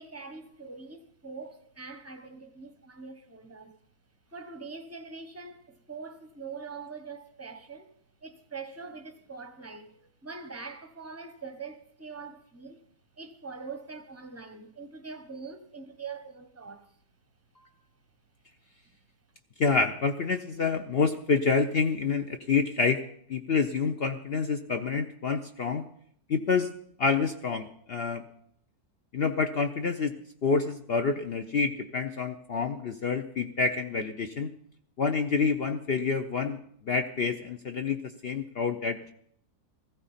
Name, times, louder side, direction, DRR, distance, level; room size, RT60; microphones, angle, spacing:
voice 1, 0.0-3.8 4.3-7.9 8.2-12.8 13.2-16.9, right 4 dB, 15° right, 0.7 m, -43 dB
voice 2, 19.6-23.0 23.3-25.9 26.3-26.7 27.0-28.2 29.1-30.1 30.4-34.5 35.0-36.6 36.8-39.1, left 5 dB, 60° left, 0.6 m, -28 dB
16.5 x 15.0 x 4.2 m
omnidirectional pair, 1.7 m